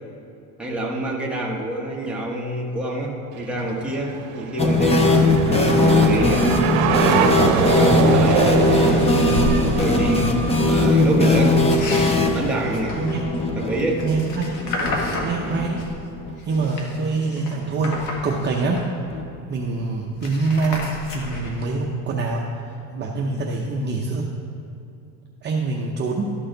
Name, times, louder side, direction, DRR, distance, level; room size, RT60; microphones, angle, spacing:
voice 1, 0.6-5.5 5.8-6.6 7.5-9.1 9.8-11.6 12.3-13.0 13.5-14.1 15.0-15.3, right 1 dB, 5° right, -3 dB, 1.2 m, -27 dB
sound 1, 3.3-11.1, right 7 dB, 80° right, 0.7 m, -24 dB
sound 2, 4.6-16.3 16.6-16.7 16.9-17.0 19.1-19.2, left 2 dB, 15° left, 0.7 m, -20 dB
sound 3, 5.4-5.6 6.0-6.7 7.0-7.3 7.8-9.6 11.2-16.0 16.4-19.1 19.4-19.5 19.7-21.7, left 1 dB, 55° left, 1.5 m, -32 dB
voice 2, 13.0-13.3 14.0-14.6 15.2-15.8 16.4-18.0 18.2-18.8 19.5-20.9 21.1-22.5 22.9-24.3 25.4-26.4, right 3 dB, 30° right, -2 dB, 0.7 m, -25 dB
12.5 x 6.3 x 3.9 m, 2.6 s
cardioid pair, 140°, 38 cm